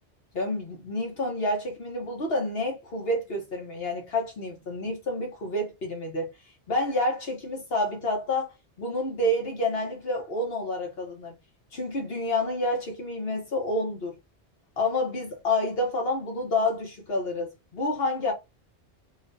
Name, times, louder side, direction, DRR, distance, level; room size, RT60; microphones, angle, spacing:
voice 1, 0.3-6.3 6.7-11.3 11.7-14.1 14.8-18.3, left 1 dB, 60° left, 1.4 m, -29 dB
3.4 x 3.1 x 2.7 m
omnidirectional pair, 1.1 m